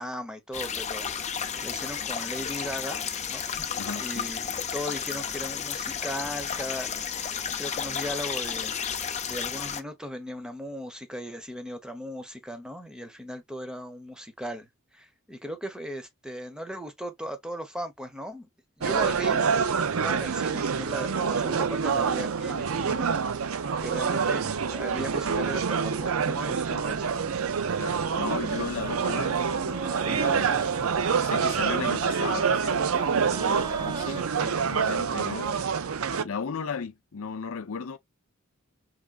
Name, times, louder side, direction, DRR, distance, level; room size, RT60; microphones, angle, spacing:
voice 1, 0.0-3.0 3.3-3.5 4.0-6.9 7.3-8.8 9.2-18.5 18.8-19.4 19.9-23.1 23.4-27.2, equal, 5° right, 1.0 m, -37 dB
sound 1, 0.5-9.8, left 7 dB, 35° left, 0.6 m, -32 dB
voice 2, 3.8-4.2 24.2-24.3 27.8-30.6 31.2-35.6 36.2-38.0, left 5 dB, 70° left, 0.6 m, -36 dB
sound 2, 18.8-36.2, right 6 dB, 75° right, 0.6 m, -27 dB
sound 3, 27.2-34.2, right 4 dB, 20° right, 0.3 m, -40 dB
4.8 x 3.4 x 2.5 m
head